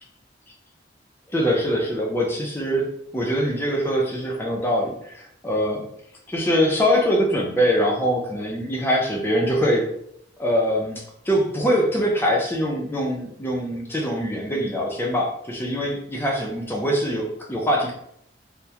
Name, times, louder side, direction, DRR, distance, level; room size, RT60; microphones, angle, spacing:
voice 1, 1.3-5.9 6.3-9.9 10.4-17.9, equal, 10° left, -1 dB, 0.4 m, -23 dB
2.8 x 2.1 x 2.3 m, 0.73 s
head